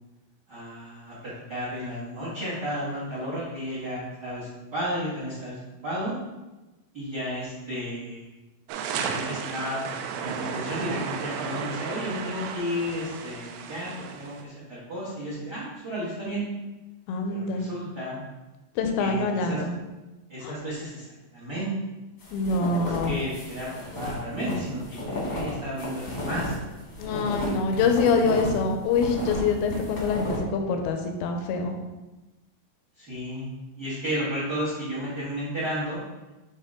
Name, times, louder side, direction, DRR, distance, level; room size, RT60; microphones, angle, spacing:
voice 1, 0.5-5.6 5.8-6.1 6.9-8.2 8.9-13.9 14.2-16.4 17.3-18.2 19.0-19.6 20.3-21.0 21.3-21.7 22.6-23.7 23.9-26.5 33.0-33.5 33.8-36.0, equal, 65° right, -8 dB, 1.0 m, -33 dB
sound 1, 8.7-14.4, right 7 dB, 85° right, 2.5 m, -34 dB
voice 2, 17.1-17.7 18.8-19.7 20.4-20.5 22.3-23.2 27.0-31.8, left 4 dB, 80° left, 4 dB, 2.2 m, -25 dB
sound 2, 22.2-28.6 28.9-30.4, left 1 dB, 60° left, 1.4 m, -33 dB
8.5 x 3.0 x 3.6 m, 1.1 s
omnidirectional pair, 4.7 m